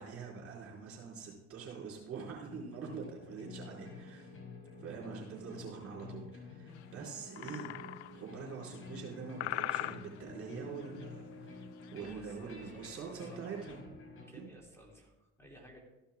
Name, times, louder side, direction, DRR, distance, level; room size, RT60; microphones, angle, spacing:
voice 1, 0.0-4.3 4.8-7.7 8.1-11.5 11.9-13.8 14.3-14.5, right 6 dB, 40° right, -3 dB, 4.4 m, -45 dB
sound 1, 2.5-14.2, left 4 dB, 40° left, 4.9 m, -51 dB
sound 2, 2.9-14.2, left 2 dB, 60° left, 4.9 m, -56 dB
sound 3, 6.7-6.9 7.4-8.3 8.7-9.1 9.4-10.4 10.7-11.1 11.6-12.2 12.4-12.5 12.9-13.0 13.4-13.8, left 15 dB, 80° left, 0.5 m, -41 dB
voice 2, 12.0-13.8 14.3-15.8, equal, 5° left, -2 dB, 3.6 m, -55 dB
14.0 x 11.0 x 3.6 m, 1.0 s
hypercardioid pair, 65°, 34 cm